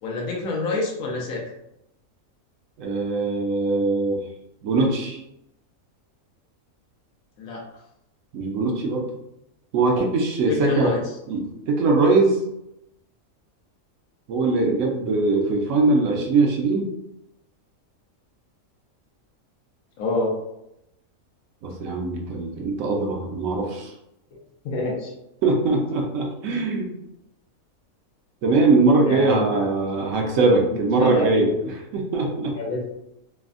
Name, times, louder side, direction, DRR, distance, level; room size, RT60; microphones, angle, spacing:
voice 1, 0.0-1.4 7.4-7.6 10.5-11.0 20.0-20.3 24.6-25.1 25.7-25.8 26.5-26.6 29.0-29.7 30.5-31.5 32.2-32.9, left 2 dB, 85° left, -2 dB, 1.1 m, -28 dB
voice 2, 2.8-4.2 4.6-5.2 8.3-9.0 9.7-10.9 11.3-11.4 11.7-12.4 14.3-16.9 21.6-23.9 25.4-26.9 28.4-31.5 31.9-32.5, right 3 dB, 70° right, 0 dB, 0.9 m, -21 dB
3.3 x 2.0 x 2.4 m, 0.84 s
omnidirectional pair, 1.5 m